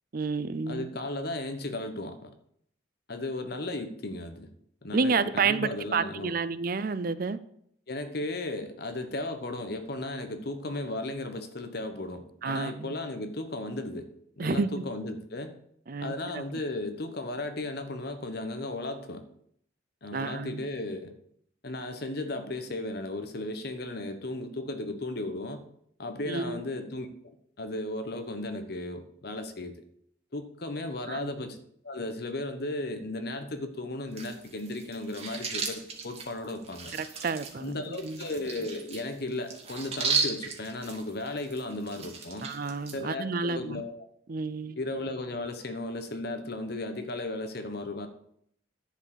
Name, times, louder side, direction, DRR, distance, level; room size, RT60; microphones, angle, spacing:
voice 1, 0.1-0.9 4.9-7.4 12.4-12.9 14.4-14.8 15.9-16.1 20.1-20.6 26.3-26.6 31.1-31.3 36.9-38.2 42.4-43.8 44.3-44.8, right 4 dB, 45° right, 0.5 m, -30 dB
voice 2, 0.7-2.3 3.1-4.5 4.8-6.3 7.9-14.1 14.4-15.5 16.0-19.2 20.0-21.1 21.6-25.6 26.0-29.8 30.3-31.6 31.8-36.9 37.5-42.5 42.9-43.9 44.8-48.1, left 2 dB, 50° left, 1.1 m, -35 dB
sound 1, 34.1-43.0, right 5 dB, 30° right, 1.6 m, -35 dB
10.5 x 4.9 x 8.0 m
head